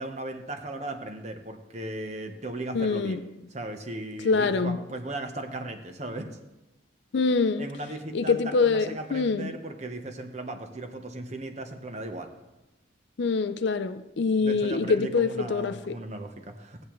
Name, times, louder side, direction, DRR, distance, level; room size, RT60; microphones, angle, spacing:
voice 1, 0.0-3.2 3.5-6.3 7.6-12.4 14.4-16.8, right 2 dB, 35° right, 0.9 m, -37 dB
voice 2, 2.7-3.2 4.2-4.8 7.1-7.7 8.1-9.5 13.2-16.0, left 4 dB, 55° left, 0.4 m, -25 dB
17.5 x 8.5 x 3.1 m
head